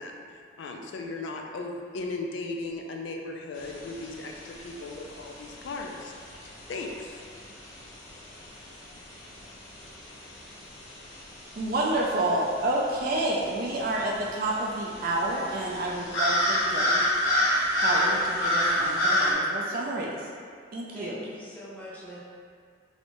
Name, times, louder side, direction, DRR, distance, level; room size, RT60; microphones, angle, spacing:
voice 1, 0.0-6.1 6.4-7.2, left 3 dB, 75° left, 2 dB, 0.3 m, -37 dB
sound 1, 3.6-19.3, equal, 90° left, 0.7 m, -30 dB
voice 2, 11.6-17.0 17.7-20.2 20.7-21.2, right 1 dB, 50° right, -3 dB, 0.3 m, -29 dB
voice 3, 20.9-22.2, equal, 10° left, -7 dB, 0.5 m, -43 dB
3.1 x 2.6 x 2.9 m, 2.1 s
head